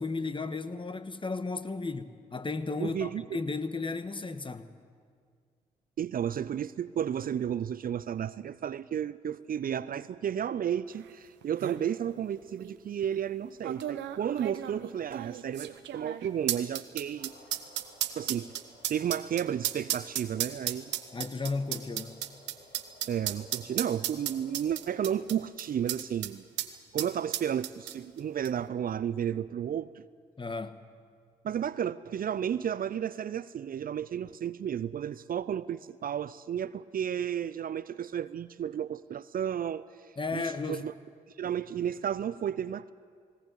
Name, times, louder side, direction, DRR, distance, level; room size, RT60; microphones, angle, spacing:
voice 1, 0.0-4.7 21.1-22.2 30.4-30.8 40.2-40.9, left 3 dB, 25° left, 1.4 m, -34 dB
voice 2, 2.8-3.4 6.0-17.3 18.2-18.5 18.9-20.9 23.1-26.5 26.9-30.0 31.4-39.8 40.3-40.9 41.4-42.9, right 9 dB, 50° right, 0.5 m, -32 dB
sound 1, 11.1-11.2 11.4-11.8 12.6-12.7 13.6-26.3 26.6-26.7 27.0-28.2 28.4-28.5, right 12 dB, 75° right, 0.9 m, -34 dB
sound 2, 17.2-25.3, left 1 dB, 55° left, 3.8 m, -56 dB
19.0 x 18.5 x 8.2 m
hypercardioid pair, 40°, 19 cm